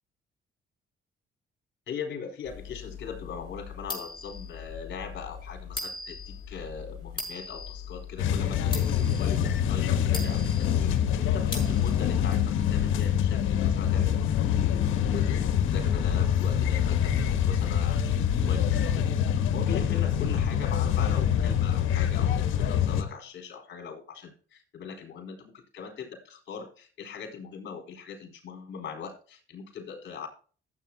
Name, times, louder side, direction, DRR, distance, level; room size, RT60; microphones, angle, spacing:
voice 1, 1.9-30.3, left 6 dB, 65° left, 2 dB, 4.5 m, -41 dB
sound 1, 2.5-12.0, left 4 dB, 20° left, 6.4 m, -40 dB
sound 2, 8.2-23.0, left 9 dB, 85° left, 1.4 m, -25 dB
14.5 x 8.4 x 2.9 m, 0.39 s
cardioid pair, 90°, 20 cm